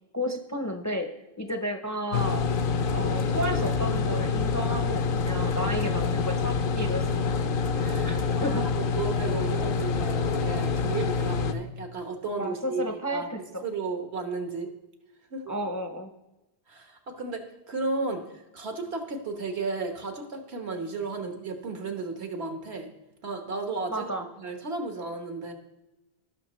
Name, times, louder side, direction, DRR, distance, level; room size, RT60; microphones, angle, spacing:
voice 1, 0.1-1.1 1.4-2.4 2.9-7.0 8.1-8.2 8.4-8.6 12.4-13.6 15.5-16.1 23.9-24.3, equal, 20° left, 5 dB, 0.5 m, -32 dB
sound 1, 2.1-11.5, left 5 dB, 60° left, 0.7 m, -26 dB
voice 2, 7.7-14.7 15.3-15.5 16.7-18.2 18.5-22.9 23.2-24.1 24.4-25.5, right 3 dB, 80° right, 4 dB, 1.5 m, -34 dB
17.0 x 5.9 x 3.1 m, 0.98 s
omnidirectional pair, 1.1 m